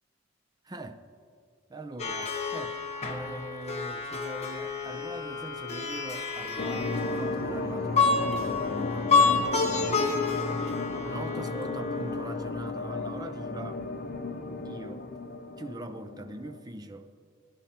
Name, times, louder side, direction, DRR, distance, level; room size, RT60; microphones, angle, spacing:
voice 1, 0.6-1.1 1.7-2.8 3.1-13.8 14.6-15.1 15.6-17.1, right 1 dB, 20° right, 0.6 m, -42 dB
Plucked string instrument, 2.0-12.4, left 4 dB, 30° left, 1.1 m, -29 dB
sound 1, 6.6-16.6, left 3 dB, 45° left, 0.7 m, -34 dB
17.5 x 11.0 x 3.0 m
head